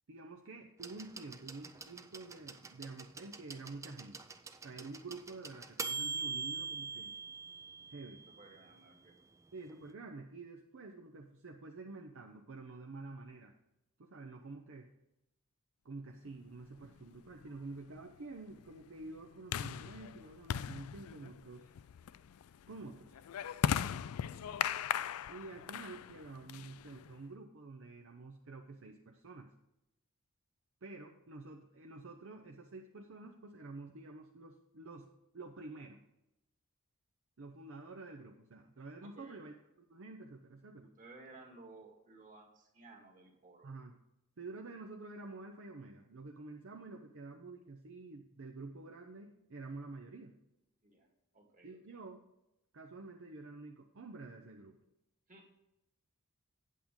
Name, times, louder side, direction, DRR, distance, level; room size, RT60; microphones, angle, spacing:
voice 1, 0.1-4.2 4.6-7.1 7.9-8.2 9.5-13.5 14.0-14.9 15.8-21.7 22.7-23.2 25.3-29.5 30.8-35.1 35.3-36.0 37.4-40.9 43.6-44.0 44.4-50.4 51.6-52.2 52.7-54.8, right 3 dB, 60° right, 2 dB, 0.7 m, -49 dB
sound 1, 0.8-8.6 9.7-9.8, right 5 dB, 15° right, 0.4 m, -43 dB
voice 2, 8.3-9.2 39.0-39.4 40.8-43.7 50.8-51.1 51.3-52.0 55.3-55.5, right 3 dB, 35° right, 1 dB, 1.9 m, -57 dB
sound 2, 16.8-27.2, left 8 dB, 75° left, 0.3 m, -39 dB
8.5 x 8.4 x 3.7 m, 0.89 s
head